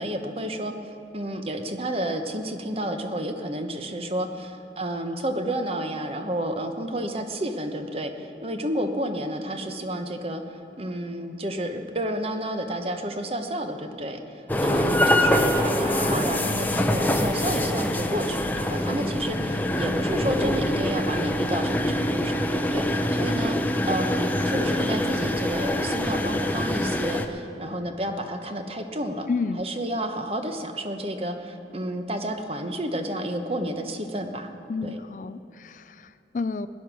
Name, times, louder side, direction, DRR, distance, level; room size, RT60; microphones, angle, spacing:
voice 1, 0.0-23.6 23.9-29.3 29.6-34.5 34.8-35.0, right 1 dB, 30° right, 6 dB, 1.0 m, -31 dB
sound 1, 14.5-27.3, left 1 dB, 10° left, 0.7 m, -24 dB
voice 2, 29.3-29.6 34.7-36.7, left 4 dB, 45° left, 13 dB, 0.3 m, -30 dB
18.0 x 10.5 x 6.2 m, 2.6 s
head